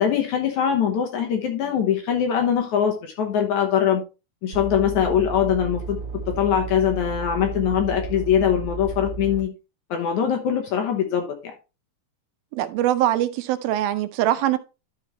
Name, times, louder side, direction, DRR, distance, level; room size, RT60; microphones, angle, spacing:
voice 1, 0.0-4.0 4.4-6.0 6.3-9.5 9.9-11.4, left 8 dB, 65° left, 2.1 m, -22 dB
sound 1, 4.5-9.4, right 4 dB, 30° right, 3.1 m, -33 dB
voice 2, 12.5-14.6, right 13 dB, 80° right, 2.4 m, -22 dB
12.0 x 5.1 x 3.0 m
omnidirectional pair, 4.3 m